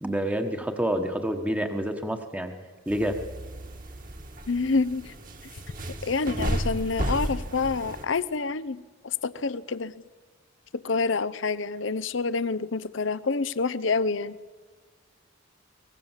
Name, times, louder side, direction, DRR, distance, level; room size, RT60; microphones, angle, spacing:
voice 1, 0.0-2.5 2.9-3.2, right 1 dB, 5° right, 5 dB, 1.3 m, -28 dB
sound 1, 2.9-8.0, right 1 dB, 45° right, 2.2 m, -33 dB
voice 2, 4.5-5.1 6.0-9.9 10.7-14.4, left 4 dB, 65° left, 17 dB, 0.8 m, -27 dB
23.5 x 20.0 x 7.4 m, 1.4 s
head